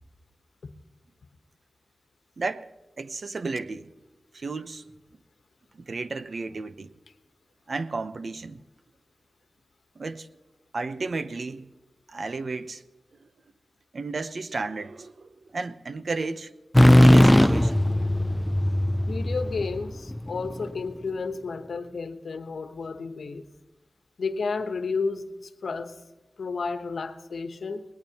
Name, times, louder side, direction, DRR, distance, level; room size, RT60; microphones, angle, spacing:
voice 1, 2.4-2.7 3.0-3.9 4.3-4.8 5.7-6.9 7.7-8.6 10.0-10.3 10.7-11.7 12.1-12.8 13.9-16.5 16.8-17.9, right 3 dB, 65° right, 0.8 m, -33 dB
sound 1, 16.7-20.5, left 1 dB, 10° left, 0.4 m, -18 dB
voice 2, 19.1-23.5 24.2-26.0 26.4-27.8, left 4 dB, 85° left, 1.1 m, -32 dB
21.5 x 19.0 x 3.0 m
cardioid pair, 50°, 0 cm